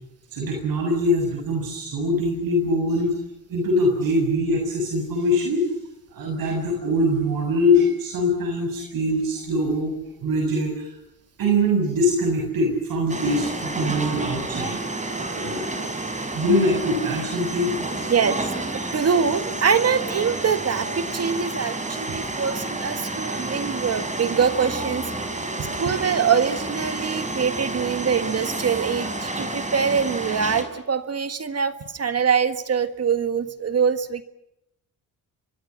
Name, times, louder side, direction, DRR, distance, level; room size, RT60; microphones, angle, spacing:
voice 1, 0.3-3.2 3.5-5.6 6.1-9.9 10.2-11.0 11.4-14.8 15.3-15.6 16.3-17.7 18.0-18.1, left 1 dB, 80° right, 1 dB, 7.3 m, -23 dB
sound 1, 13.1-30.6, right 2 dB, 20° right, 5.2 m, -30 dB
voice 2, 18.1-25.0 25.8-34.2, right 6 dB, 45° right, 10 dB, 1.7 m, -24 dB
28.5 x 23.5 x 5.9 m, 0.85 s
cardioid pair, 90°, 34 cm